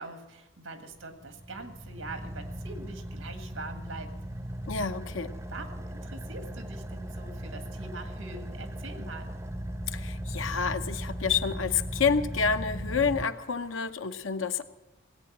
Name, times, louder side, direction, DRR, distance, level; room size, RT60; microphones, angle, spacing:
voice 1, 0.0-4.1 5.5-9.4, right 3 dB, 90° right, 7 dB, 1.9 m, -43 dB
Car / Idling, 1.0-13.9, equal, 15° right, 0.5 m, -38 dB
voice 2, 4.7-5.3 9.9-14.6, left 5 dB, 85° left, 9 dB, 0.8 m, -29 dB
18.0 x 8.8 x 7.3 m, 1.1 s
head